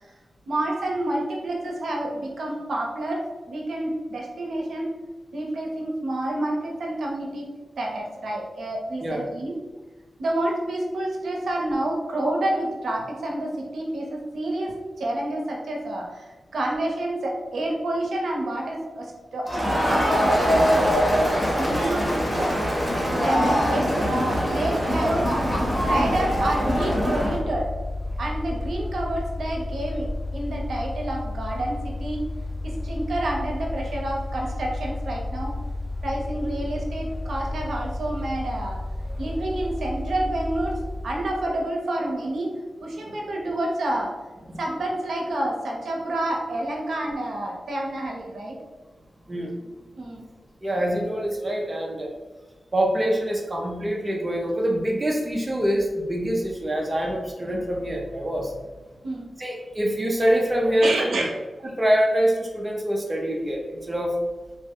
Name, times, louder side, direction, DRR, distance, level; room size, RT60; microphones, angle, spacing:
voice 1, 0.5-5.0 5.3-9.6 10.2-20.5 21.6-22.7 23.2-25.3 25.8-27.8 28.2-32.2 32.6-35.6 36.0-38.8 39.2-44.1 44.6-48.6 50.0-50.3 59.0-59.3 60.8-61.4, right 1 dB, 75° right, -1 dB, 0.6 m, -29 dB
Crowd, 19.5-27.4, equal, 10° left, 1.0 m, -23 dB
Mechanical fan, 24.8-41.6, left 2 dB, 65° left, 0.5 m, -32 dB
voice 2, 50.6-52.1 52.7-58.5 59.4-60.9 61.8-64.1, equal, 20° right, -1 dB, 0.5 m, -25 dB
3.5 x 2.1 x 3.5 m, 1.2 s
wide cardioid pair, 155°, 0 cm